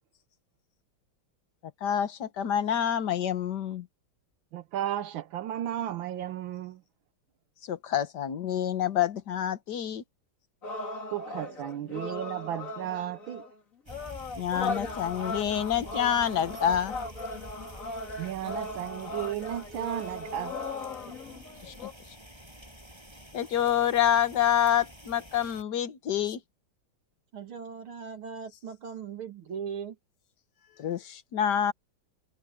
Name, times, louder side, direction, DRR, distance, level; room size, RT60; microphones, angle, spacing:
voice 1, 1.8-3.9 7.6-10.0 14.4-16.9 21.6-21.9 23.3-26.4 30.8-31.7, left 9 dB, 55° left, 1.7 m, -27 dB
voice 2, 4.5-6.8 11.1-13.4 18.2-20.6, right 11 dB, 75° right, 1.5 m, -34 dB
sound 1, 10.6-13.6 13.9-21.9, left 2 dB, 40° left, 2.4 m, -38 dB
sound 2, 13.9-25.6, equal, 10° right, 8.2 m, -48 dB
voice 3, 27.3-30.0, right 6 dB, 90° right, 3.2 m, -39 dB
omnidirectional pair, 2.2 m